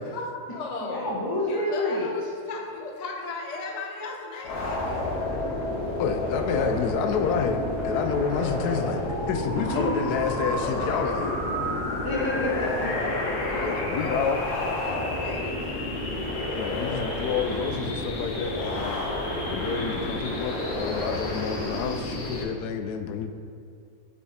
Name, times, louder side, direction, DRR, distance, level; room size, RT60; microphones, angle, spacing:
voice 1, 0.1-1.1 1.5-5.1 9.5-11.3 13.4-16.0, left 2 dB, 35° left, 1 dB, 0.7 m, -37 dB
voice 2, 0.8-2.1 9.7-10.0 12.0-13.4, left 1 dB, 15° left, -3 dB, 1.0 m, -29 dB
sound 1, 4.4-22.4, left 2 dB, 55° left, 1.3 m, -30 dB
voice 3, 6.0-11.3 13.6-14.4 16.5-19.1 19.5-23.3, left 6 dB, 90° left, 7 dB, 1.1 m, -29 dB
8.0 x 5.8 x 4.2 m, 2.3 s
omnidirectional pair, 1.6 m